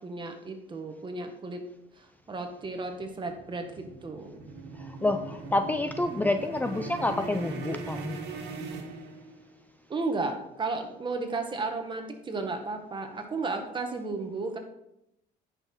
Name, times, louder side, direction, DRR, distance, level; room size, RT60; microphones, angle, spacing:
voice 1, 0.0-1.6 2.3-4.4 9.9-14.6, right 3 dB, 30° right, 5 dB, 1.6 m, -33 dB
sound 1, 2.4-9.6, right 4 dB, 85° right, 1.7 m, -40 dB
voice 2, 4.8-8.2, left 2 dB, 10° left, 7 dB, 0.4 m, -28 dB
10.0 x 5.7 x 4.5 m, 0.82 s
cardioid pair, 110°, 17 cm